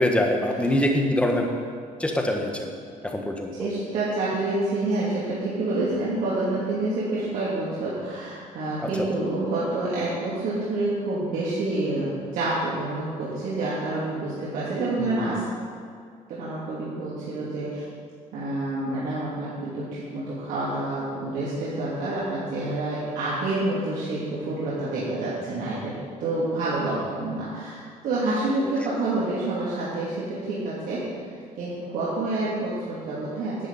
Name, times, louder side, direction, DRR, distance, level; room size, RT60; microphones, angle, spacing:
voice 1, 0.0-1.5 2.0-2.7 3.0-3.7 8.8-8.9 15.0-15.4 28.6-28.7, left 1 dB, 10° left, 2 dB, 1.2 m, -24 dB
voice 2, 3.6-15.4 16.3-17.8 18.3-25.9 26.2-31.1 31.6-33.7, right 2 dB, 75° right, -9 dB, 2.9 m, -28 dB
10.5 x 6.3 x 9.0 m, 2.2 s
cardioid pair, 155°, 14 cm